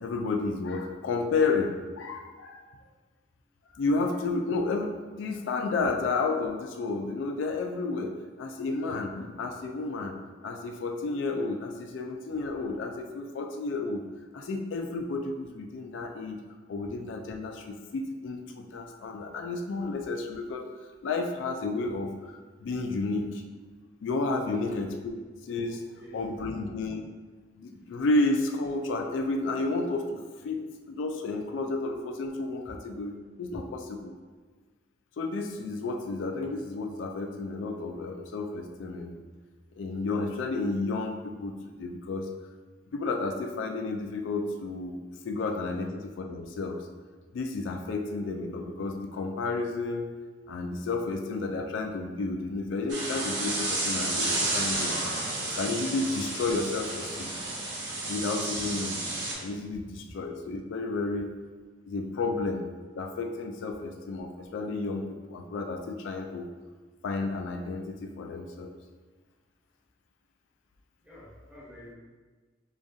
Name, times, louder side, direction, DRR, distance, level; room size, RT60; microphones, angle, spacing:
voice 1, 0.0-2.6 3.7-10.1 10.4-14.1 14.3-16.4 16.7-20.7 21.0-23.4 24.0-25.1 25.4-25.8 26.1-27.0 27.6-34.1 35.2-39.2 39.8-42.3 42.9-45.0 45.2-46.9 47.3-50.1 50.5-55.0 55.5-57.3 58.0-59.0 59.4-61.3 61.9-62.6 62.9-66.5 67.0-68.7, left 3 dB, 80° left, 3 dB, 0.3 m, -31 dB
voice 2, 25.9-26.6 54.1-54.2 55.2-55.3 71.0-71.9, left 1 dB, 10° right, -9 dB, 1.2 m, -48 dB
sound 1, 52.9-59.3, right 2 dB, 75° right, 0.8 m, -31 dB
5.0 x 2.6 x 2.4 m, 1.4 s
head